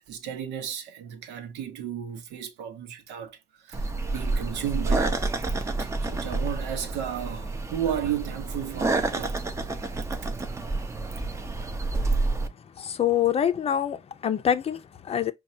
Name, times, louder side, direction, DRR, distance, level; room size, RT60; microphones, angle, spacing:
voice 1, 0.1-5.2 5.5-9.4 10.1-10.3, right 9 dB, 90° right, 0.9 m, -34 dB
sound 1, 3.7-12.5, right 3 dB, 15° right, 0.6 m, -29 dB
voice 2, 12.8-15.3, left 9 dB, 35° left, 0.5 m, -25 dB
5.2 x 2.3 x 2.7 m
cardioid pair, 110°, 17 cm